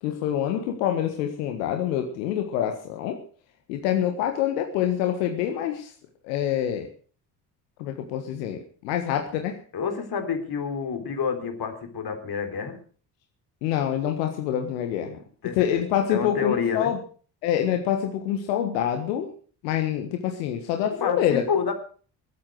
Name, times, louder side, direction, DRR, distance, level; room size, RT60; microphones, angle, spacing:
voice 1, 0.0-3.2 3.7-5.9 6.2-6.9 7.8-8.6 8.8-9.6 13.6-15.2 15.5-17.0 17.4-19.3 19.6-21.4, left 10 dB, 80° left, 5 dB, 1.6 m, -26 dB
voice 2, 9.7-12.8 15.4-15.8 16.1-16.9 20.9-21.7, left 6 dB, 45° left, 6 dB, 3.8 m, -28 dB
20.5 x 8.8 x 6.4 m, 0.43 s
hypercardioid pair, 50°, 50 cm